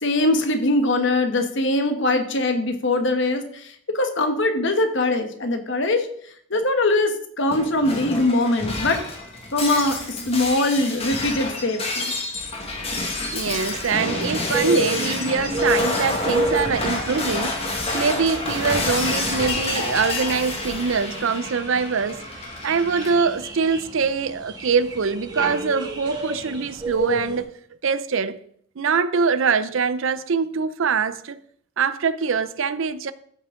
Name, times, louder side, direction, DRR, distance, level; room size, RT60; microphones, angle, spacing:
voice 1, 0.0-6.1 6.5-9.0 9.5-12.1, left 2 dB, 55° left, 1.2 m, -22 dB
Shatter, 7.5-23.1, left 2 dB, 25° left, 1.6 m, -28 dB
voice 2, 13.3-22.3 22.6-27.5 27.8-28.4 28.8-31.4 31.8-33.1, right 5 dB, 65° right, 0.5 m, -23 dB
sound 1, 14.5-27.4, right 1 dB, 20° right, 1.3 m, -30 dB
14.0 x 6.0 x 3.7 m
head